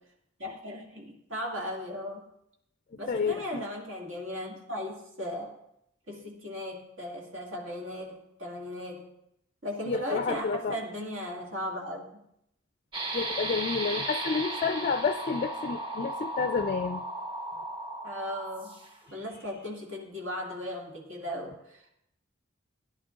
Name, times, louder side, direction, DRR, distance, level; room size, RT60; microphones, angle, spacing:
voice 1, 0.4-2.3 3.0-5.6 6.1-9.1 9.6-12.2 18.0-18.8 19.1-21.9, equal, 75° right, -2 dB, 2.2 m, -37 dB
voice 2, 3.1-3.6 9.9-10.8 13.1-17.0, left 5 dB, 40° left, 9 dB, 0.3 m, -30 dB
sound 1, 12.9-19.1, right 2 dB, 25° right, 1.0 m, -35 dB
18.0 x 11.0 x 2.5 m, 0.76 s
head